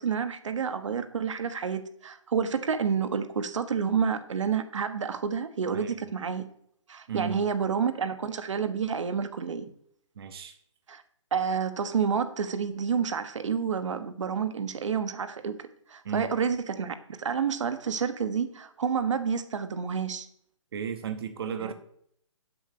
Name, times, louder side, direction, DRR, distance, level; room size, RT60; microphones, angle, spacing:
voice 1, 0.0-6.5 6.9-9.7 10.9-11.0 11.3-20.3 21.6-21.7, right 6 dB, 70° right, 10 dB, 1.2 m, -29 dB
voice 2, 7.1-7.4 10.2-10.6 16.0-16.3 20.7-21.7, right 7 dB, 50° right, 8 dB, 0.9 m, -34 dB
7.7 x 6.3 x 6.6 m, 0.68 s
hypercardioid pair, 170°, 16 cm